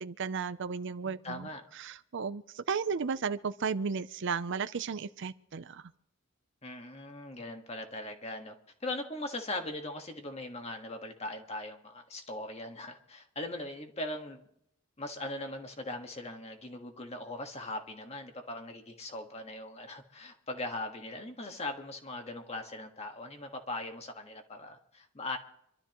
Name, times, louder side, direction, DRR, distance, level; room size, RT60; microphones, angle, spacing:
voice 1, 0.0-5.8, right 5 dB, 60° right, 0.5 m, -34 dB
voice 2, 1.0-1.6 6.6-14.4 15.0-25.4, left 2 dB, 30° left, 1.7 m, -40 dB
25.5 x 12.5 x 3.1 m
head